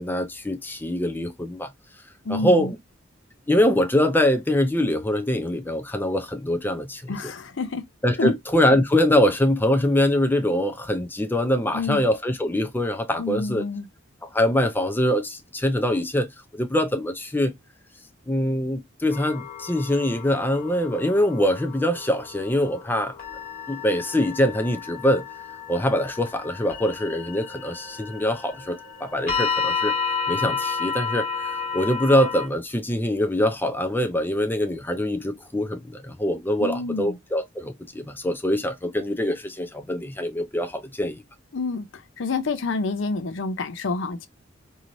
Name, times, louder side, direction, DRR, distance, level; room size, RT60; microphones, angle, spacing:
voice 1, 0.0-1.7 2.3-2.8 3.5-7.3 8.0-13.6 14.2-17.5 18.3-23.2 23.7-25.2 25.7-29.9 30.3-41.2, left 1 dB, 10° left, 0.5 m, -23 dB
voice 2, 2.2-2.7 7.1-7.8 8.2-8.3 11.7-12.0 13.2-13.9 36.6-37.1 41.5-41.9 42.2-44.3, left 3 dB, 70° left, 0.6 m, -28 dB
sound 1, 19.1-32.5, left 6 dB, 45° left, 1.4 m, -32 dB
3.0 x 2.7 x 2.6 m
head